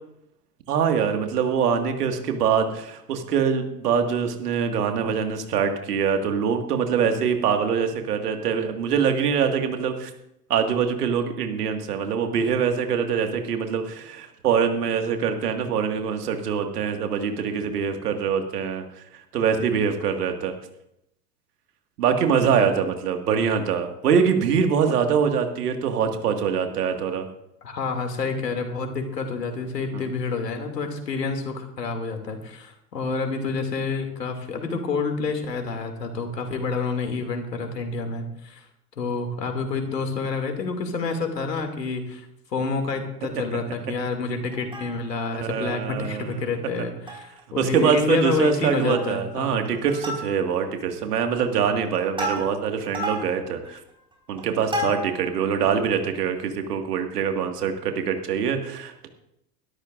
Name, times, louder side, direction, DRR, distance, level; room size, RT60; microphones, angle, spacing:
voice 1, 0.7-10.1 10.5-19.0 19.3-20.5 22.0-27.3 29.9-30.0 45.4-46.5 47.6-53.8 54.3-59.1, right 7 dB, 70° right, 5 dB, 2.1 m, -24 dB
voice 2, 27.6-38.6 39.0-42.3 42.5-49.6, left 4 dB, 80° left, 5 dB, 2.7 m, -28 dB
Plucked string instrument, 44.5-45.3 45.7-45.8 46.1-46.3 46.7-47.4 47.7-47.8 48.2-48.5 48.9-49.3 49.6-50.7 51.2-55.3 55.8-55.9, equal, 10° right, 5.1 m, -33 dB
21.5 x 13.0 x 2.6 m, 0.78 s
figure-of-eight pair, 95°, 49 cm